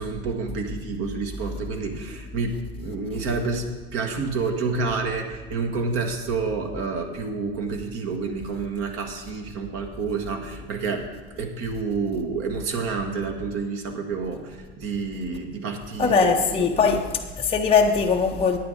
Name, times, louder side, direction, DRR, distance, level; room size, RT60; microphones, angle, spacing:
voice 1, 0.0-11.1 11.4-17.0, right 4 dB, 45° right, 1.5 m, -29 dB
voice 2, 16.0-18.6, left 5 dB, 15° left, 0.8 m, -21 dB
9.4 x 8.9 x 5.2 m
hypercardioid pair, 100°, 32 cm